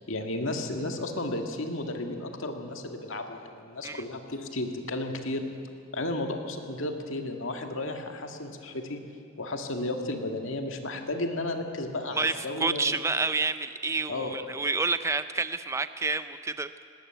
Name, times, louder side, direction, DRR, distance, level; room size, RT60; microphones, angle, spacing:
voice 1, 0.0-5.5 5.9-9.0 9.4-13.0 14.1-14.3, left 2 dB, 60° left, 4 dB, 2.1 m, -33 dB
voice 2, 12.1-16.7, right 3 dB, 15° right, 11 dB, 0.5 m, -29 dB
19.0 x 18.5 x 9.2 m, 2.6 s
head